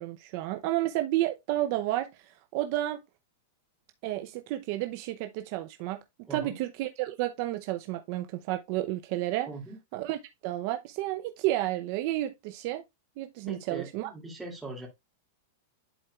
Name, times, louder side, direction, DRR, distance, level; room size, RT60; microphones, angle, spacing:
voice 1, 0.0-3.0 4.0-6.0 6.3-9.5 9.9-12.8 13.2-14.1, right 15 dB, 50° right, 0.7 m, -31 dB
voice 2, 9.5-9.8 13.5-14.9, right 3 dB, 10° right, 2.4 m, -40 dB
11.0 x 4.4 x 2.4 m
supercardioid pair, 140°, 0 cm